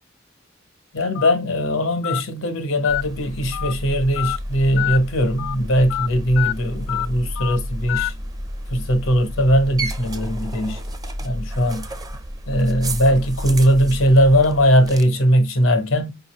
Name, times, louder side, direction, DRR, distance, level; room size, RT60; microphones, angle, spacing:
voice 1, 0.9-8.1 8.7-10.8 11.2-11.9 12.5-16.1, equal, 90° left, 1.0 m, -19 dB
Telephone, 1.1-1.3 2.0-2.2 2.8-3.0 3.5-3.7 4.2-4.4 4.8-5.0 5.4-5.5 5.9-6.1 6.4-6.5 6.9-7.1 7.4-7.6 7.9-8.1, left 15 dB, 65° left, 0.3 m, -25 dB
sound 1, 2.9-15.0, right 1 dB, 20° right, 0.5 m, -31 dB
5.2 x 2.7 x 3.0 m
head